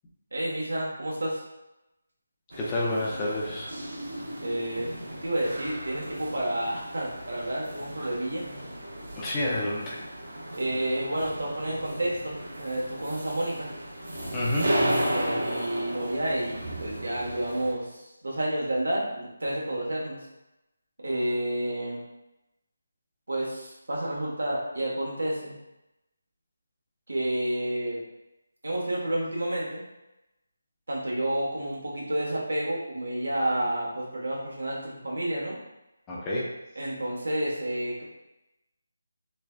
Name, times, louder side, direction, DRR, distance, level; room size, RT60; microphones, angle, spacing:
voice 1, 0.3-1.4 4.4-4.9 5.2-8.5 10.5-13.7 15.1-20.2 21.0-22.0 23.3-25.6 27.1-28.0 28.6-29.8 30.9-35.6 36.8-38.0, right 1 dB, 85° right, -5 dB, 1.2 m, -30 dB
sound 1, 2.5-17.7, right 1 dB, 65° right, 1.0 m, -34 dB
voice 2, 2.6-3.7 9.2-10.0 14.3-14.7 36.1-36.5, left 1 dB, 10° left, -5 dB, 0.4 m, -29 dB
3.5 x 3.1 x 2.3 m, 0.95 s
figure-of-eight pair, 175°, 0 cm